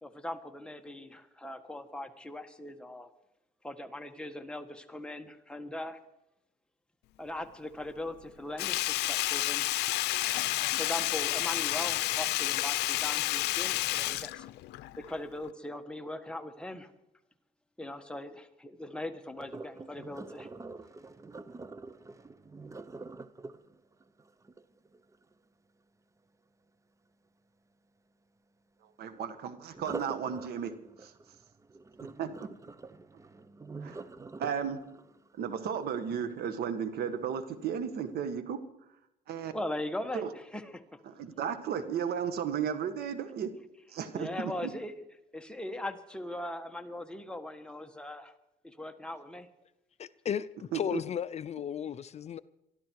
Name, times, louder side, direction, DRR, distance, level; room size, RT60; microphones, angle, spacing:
voice 1, 0.0-3.1 3.6-6.0 7.2-10.0 10.7-14.4 15.0-16.9 17.8-20.5 39.5-41.0 44.1-44.9 45.3-48.3 48.6-49.5, left 1 dB, 5° left, 1.4 m, -40 dB
Sink (filling or washing), 8.6-15.1 15.4-15.5, left 18 dB, 80° left, 0.6 m, -30 dB
Sink (filling or washing) 2, 19.4-25.3 29.7-36.8 37.3-37.6 38.1-38.2, right 3 dB, 20° right, 0.7 m, -46 dB
voice 2, 28.8-30.7 31.0-31.1 32.2-32.5 33.8-34.0 34.4-34.8 35.4-38.6 39.3-39.5 40.1-40.3 41.0-43.5 43.9-44.5 50.7-51.0, right 8 dB, 70° right, 1.6 m, -34 dB
voice 3, 50.0-52.4, left 8 dB, 40° left, 0.5 m, -35 dB
23.5 x 13.5 x 4.7 m
cardioid pair, 110°, 17 cm